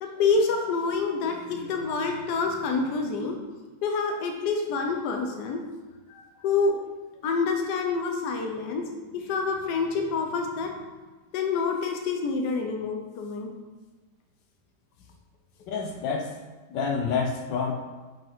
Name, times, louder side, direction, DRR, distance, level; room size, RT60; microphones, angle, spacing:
voice 1, 0.0-3.4 3.8-5.6 6.1-6.7 7.2-8.8 9.1-10.8 11.3-13.5, left 4 dB, 70° left, 3 dB, 1.3 m, -27 dB
voice 2, 15.7-16.3 16.7-17.7, left 5 dB, 85° left, 2 dB, 1.4 m, -28 dB
5.8 x 5.2 x 3.6 m, 1.2 s
omnidirectional pair, 1.9 m